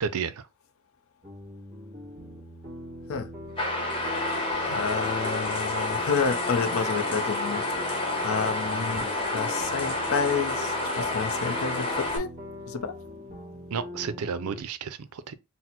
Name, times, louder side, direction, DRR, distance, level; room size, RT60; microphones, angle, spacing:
voice 1, 0.0-0.4 13.7-15.3, right 6 dB, 80° right, 0.5 m, -32 dB
sound 1, 1.2-14.6, left 1 dB, 25° right, 1.7 m, -41 dB
sound 2, 3.6-12.2, left 2 dB, 25° left, 1.0 m, -29 dB
voice 2, 4.7-12.3 12.7-13.0, left 5 dB, 65° left, 0.6 m, -30 dB
4.2 x 2.0 x 4.3 m
head